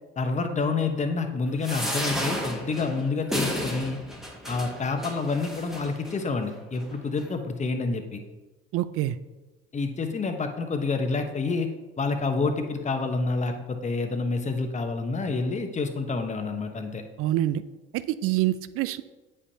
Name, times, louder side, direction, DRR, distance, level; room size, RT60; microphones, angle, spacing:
voice 1, 0.2-4.0 4.5-8.2 9.7-11.7 12.0-17.0, left 3 dB, 25° left, 6 dB, 0.9 m, -28 dB
sound 1, 1.6-6.2 6.8-6.9 7.2-7.3, equal, ahead, 1.3 m, -32 dB
voice 2, 8.7-9.2 17.2-17.6 17.9-19.0, right 14 dB, 50° right, 14 dB, 0.4 m, -26 dB
8.1 x 5.4 x 2.8 m, 1.2 s
hypercardioid pair, 70°, 30 cm